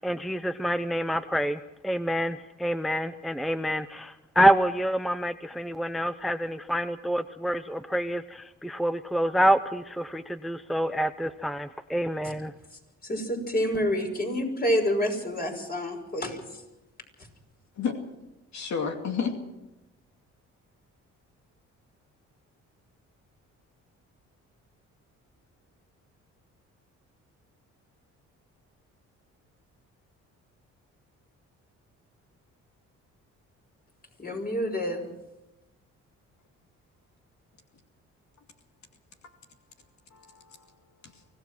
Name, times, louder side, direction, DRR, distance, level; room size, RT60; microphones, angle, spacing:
voice 1, 0.0-12.5, equal, ahead, 0.7 m, -27 dB
voice 2, 13.0-16.6 34.2-35.1, equal, 30° left, 5.8 m, -28 dB
voice 3, 18.5-19.4 39.2-39.4 40.1-41.3, left 6 dB, 65° left, 2.4 m, -32 dB
24.5 x 17.0 x 6.1 m
cardioid pair, 90°, 30 cm